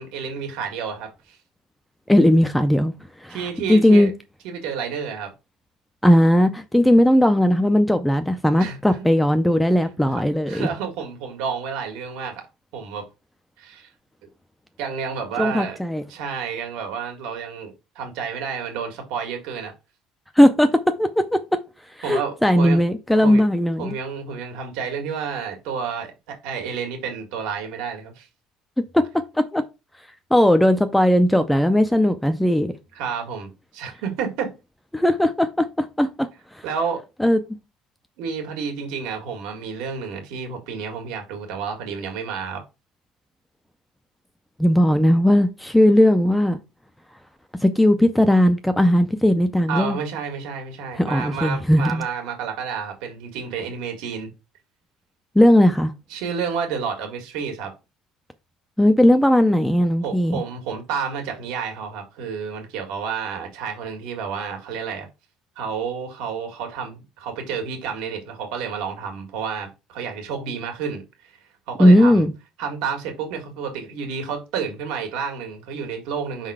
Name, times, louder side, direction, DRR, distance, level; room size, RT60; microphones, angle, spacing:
voice 1, 0.0-1.4 3.3-4.1 4.4-5.3 8.6-9.0 10.5-12.4 12.7-13.1 13.6-13.9 14.8-15.8 16.1-19.7 22.0-22.8 23.1-23.4 23.8-28.3 32.9-34.5 36.6-37.0 38.2-42.6 49.7-54.3 56.1-57.7 60.0-65.1 65.5-71.0 71.7-72.2 72.6-76.5, right 6 dB, 75° right, 1.7 m, -30 dB
voice 2, 2.1-2.9 3.2-3.4 3.7-4.1 6.0-10.7 15.4-16.0 20.4-21.4 22.0-23.9 28.9-29.0 29.3-29.6 30.3-32.7 34.9-36.3 37.2-37.4 44.6-46.6 47.6-50.0 51.0-52.1 55.4-55.9 58.8-60.4 71.8-72.3, left 1 dB, 5° left, 0.4 m, -17 dB
5.3 x 3.8 x 4.8 m
cardioid pair, 170°, 0 cm